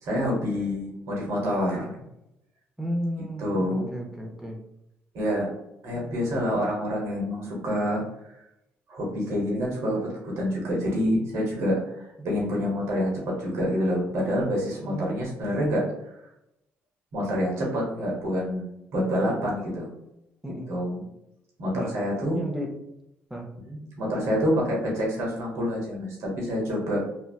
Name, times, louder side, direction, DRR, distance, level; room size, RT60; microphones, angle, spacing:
voice 1, 0.0-2.0 3.4-3.9 5.1-5.5 5.8-8.0 8.9-15.8 17.1-19.9 20.7-21.0 21.6-22.4 23.7-27.1, equal, 75° right, -3 dB, 0.9 m, -27 dB
voice 2, 2.8-4.6 5.9-6.4 12.2-12.3 14.8-15.3 20.4-20.7 21.7-21.9 22.3-22.7 23.3-23.5, equal, 10° right, 0 dB, 0.6 m, -34 dB
2.7 x 2.2 x 2.3 m, 0.84 s
cardioid pair, 75°, 5 cm